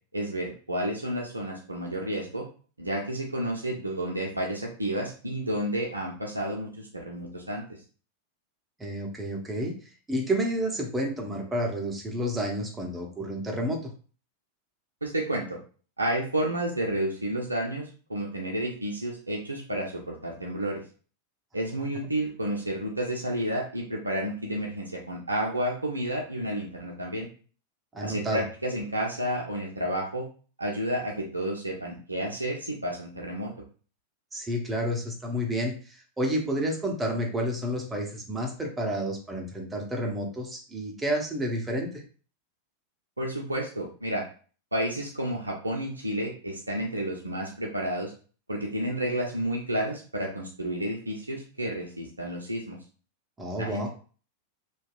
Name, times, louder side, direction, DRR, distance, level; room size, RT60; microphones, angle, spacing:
voice 1, 0.1-2.4 2.8-7.8 15.0-15.6 16.0-20.8 21.5-27.3 28.0-30.3 30.6-33.5 43.2-44.2 44.7-48.1 48.5-52.8 53.6-53.9, right 1 dB, 80° right, -1 dB, 0.5 m, -31 dB
voice 2, 8.8-9.8 10.1-13.8 27.9-28.4 34.3-42.0 53.4-53.9, equal, 15° right, 1 dB, 0.7 m, -30 dB
2.7 x 2.3 x 2.3 m, 0.39 s
figure-of-eight pair, 90°, 0 cm